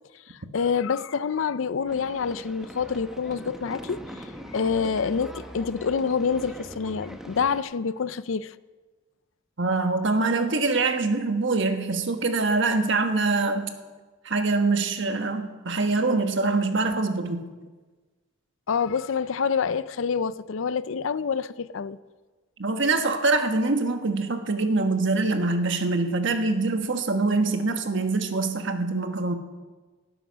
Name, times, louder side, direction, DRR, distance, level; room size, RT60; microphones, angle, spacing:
voice 1, 0.3-8.5 18.7-22.0, left 6 dB, 65° left, 16 dB, 0.5 m, -27 dB
sound 1, 1.9-7.6, equal, ahead, 1.0 m, -41 dB
voice 2, 9.6-13.7 14.2-17.4 22.6-29.3, right 3 dB, 60° right, 6 dB, 1.3 m, -24 dB
17.5 x 10.0 x 6.2 m, 1.3 s
head